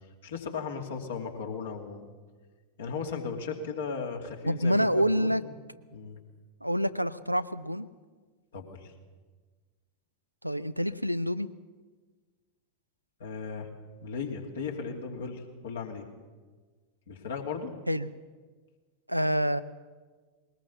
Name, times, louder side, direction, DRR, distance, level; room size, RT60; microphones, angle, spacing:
voice 1, 0.2-2.1 2.8-5.5 5.9-6.2 8.5-8.9 13.2-13.7 14.0-16.0 17.1-17.7, left 5 dB, 60° left, 2 dB, 2.7 m, -36 dB
voice 2, 4.5-5.4 6.6-7.9 10.4-11.5 17.9-18.1 19.1-19.6, equal, 90° right, 13 dB, 0.6 m, -27 dB
20.5 x 19.5 x 7.1 m, 1.4 s
figure-of-eight pair, 90°, 0 cm